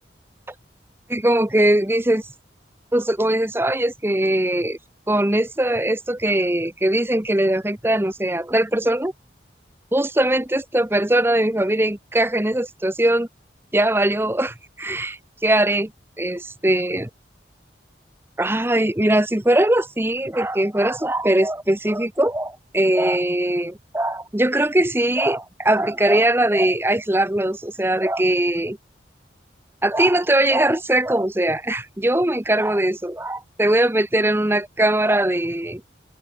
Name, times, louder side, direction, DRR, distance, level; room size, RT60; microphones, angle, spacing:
voice 1, 1.1-2.2 2.9-4.8 5.1-9.1 9.9-13.3 13.7-15.9 16.2-17.1 18.4-28.8 29.8-35.8, right 1 dB, 15° right, 0.9 m, -20 dB
open air
head